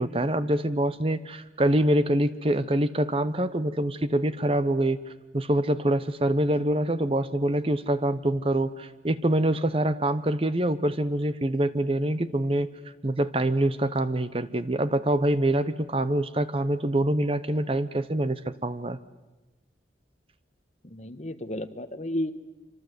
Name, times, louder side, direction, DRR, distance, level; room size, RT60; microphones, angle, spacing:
voice 1, 0.0-5.0 5.3-12.7 13.0-19.0, right 1 dB, 30° right, 13 dB, 0.9 m, -25 dB
voice 2, 20.8-22.3, left 1 dB, 40° left, 10 dB, 1.3 m, -32 dB
25.5 x 25.5 x 8.1 m, 1.1 s
head